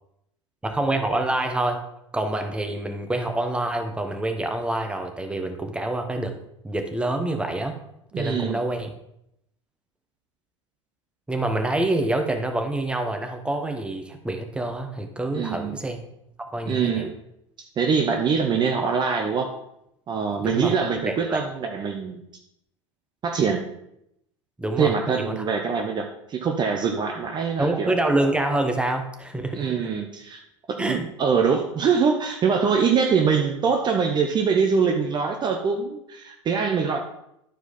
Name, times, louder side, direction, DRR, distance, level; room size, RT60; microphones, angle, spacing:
voice 1, 0.6-1.8 2.1-6.3 6.6-7.8 8.2-8.9 11.3-16.0 16.4-17.0 20.4-20.7 21.1-21.4 24.6-25.4 27.6-29.8 30.8-31.0, right 2 dB, 5° right, 5 dB, 1.0 m, -26 dB
voice 2, 8.1-8.6 15.3-15.8 16.7-17.2 17.8-19.5 20.1-22.2 23.2-23.6 24.8-27.9 29.5-30.4 30.7-37.0, right 6 dB, 25° right, 3 dB, 0.8 m, -23 dB
11.5 x 4.6 x 4.3 m, 0.79 s
figure-of-eight pair, 80°, 16 cm